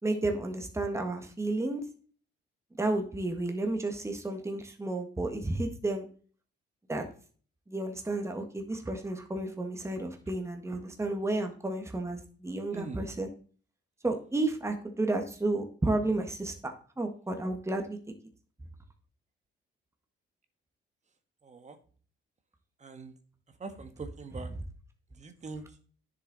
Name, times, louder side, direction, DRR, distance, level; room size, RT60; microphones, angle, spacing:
voice 1, 0.0-1.8 2.8-6.1 6.9-7.1 7.7-13.3 14.0-18.0, right 2 dB, 15° right, 4 dB, 1.8 m, -32 dB
voice 2, 12.7-13.1 21.4-21.8 22.8-23.1 23.6-24.5 25.2-25.6, right 4 dB, 35° right, 9 dB, 1.7 m, -42 dB
9.9 x 7.3 x 4.1 m, 0.43 s
cardioid pair, 90°, 20 cm